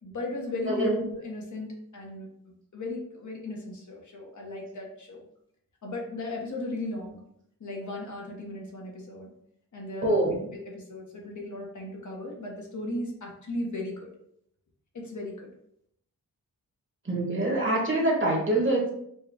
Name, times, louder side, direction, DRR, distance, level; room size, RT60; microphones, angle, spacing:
voice 1, 0.0-2.3 2.7-5.2 5.8-7.2 7.6-9.3 9.7-14.1 14.9-15.5, left 2 dB, 55° left, -1 dB, 1.0 m, -36 dB
voice 2, 10.0-10.3 17.0-18.9, right 1 dB, 35° right, -3 dB, 1.3 m, -25 dB
4.4 x 2.3 x 3.5 m, 0.71 s
wide cardioid pair, 130°, 35 cm